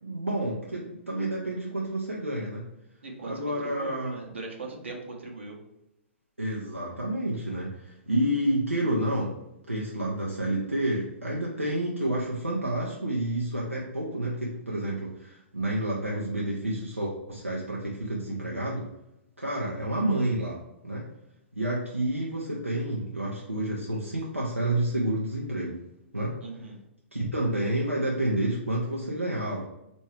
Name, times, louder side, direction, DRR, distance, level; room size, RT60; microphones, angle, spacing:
voice 1, 0.0-2.6 3.2-4.2 6.4-9.4 9.7-18.9 19.4-21.1 21.6-25.8 26.1-26.4 27.1-29.6, right 1 dB, 90° right, -4 dB, 0.7 m, -29 dB
voice 2, 3.0-5.6 26.4-26.8, right 3 dB, 70° right, 0 dB, 0.9 m, -40 dB
4.5 x 2.6 x 3.2 m, 0.88 s
figure-of-eight pair, 110°, 7 cm